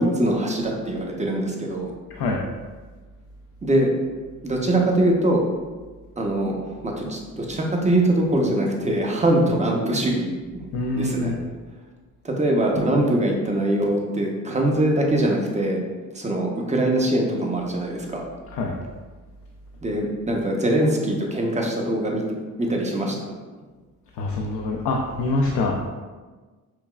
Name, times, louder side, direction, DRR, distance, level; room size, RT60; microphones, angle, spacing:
voice 1, 0.0-1.9 3.6-3.9 4.4-5.4 6.2-10.6 11.0-11.3 12.2-15.8 16.1-18.2 19.8-22.2 22.6-23.1, right 1 dB, 20° right, 0 dB, 0.8 m, -22 dB
voice 2, 2.1-2.4 10.7-11.4 18.5-18.8 24.1-25.8, left 2 dB, 75° left, 0 dB, 0.6 m, -25 dB
5.7 x 2.2 x 2.3 m, 1.3 s
supercardioid pair, 70°, 38 cm